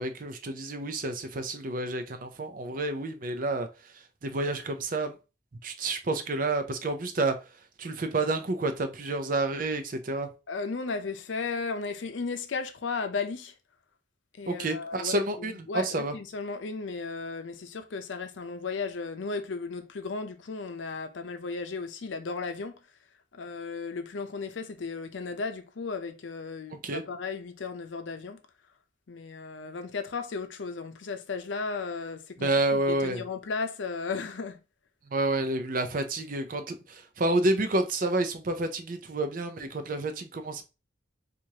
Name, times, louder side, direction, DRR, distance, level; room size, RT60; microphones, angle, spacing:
voice 1, 0.0-3.7 4.2-5.1 5.6-7.3 7.8-10.3 14.5-16.1 26.7-27.0 32.4-33.2 35.1-40.6, right 2 dB, 45° right, 0.5 m, -29 dB
voice 2, 10.5-13.5 14.4-22.8 23.3-28.4 29.1-34.6, left 4 dB, 85° left, 0.6 m, -35 dB
4.6 x 2.5 x 2.8 m
head